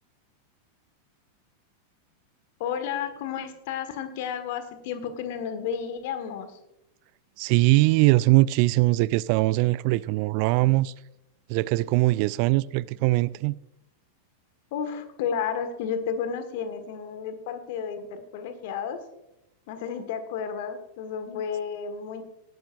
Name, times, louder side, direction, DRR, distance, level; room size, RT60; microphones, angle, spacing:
voice 1, 2.6-6.6 14.7-19.0 19.7-22.2, left 7 dB, 50° left, 1.7 m, -32 dB
voice 2, 7.4-10.9 11.5-13.6, right 20 dB, 45° right, 0.3 m, -21 dB
18.5 x 12.0 x 2.6 m
figure-of-eight pair, 90°, 0 cm